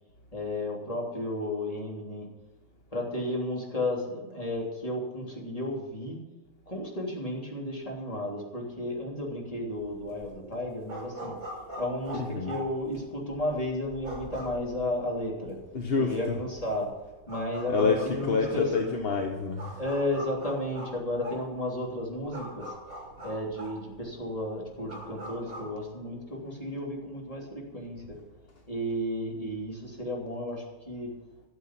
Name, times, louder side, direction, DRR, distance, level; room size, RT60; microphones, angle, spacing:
voice 1, 0.3-2.3 2.9-6.2 6.7-11.3 11.8-15.6 15.9-16.9 17.3-18.6 19.7-22.6 23.2-28.1 28.7-31.1, left 1 dB, 20° left, -2 dB, 3.2 m, -33 dB
sound 1, 9.8-25.7, right 1 dB, 45° right, 5.1 m, -43 dB
voice 2, 12.2-12.6 15.7-16.4 17.7-19.8, left 4 dB, 40° left, 3 dB, 0.9 m, -28 dB
13.0 x 7.9 x 5.9 m, 1.2 s
omnidirectional pair, 2.0 m